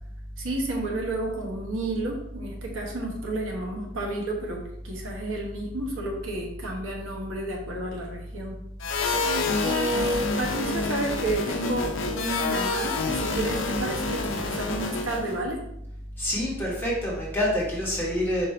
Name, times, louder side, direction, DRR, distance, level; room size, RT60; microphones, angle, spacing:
voice 1, 0.4-8.6 9.6-15.6, right 2 dB, 80° right, 0 dB, 1.1 m, -31 dB
sound 1, 8.8-15.4, left 3 dB, 75° left, 0.6 m, -28 dB
voice 2, 16.2-18.5, left 1 dB, 10° left, -5 dB, 1.2 m, -27 dB
4.6 x 2.6 x 4.3 m, 0.80 s
head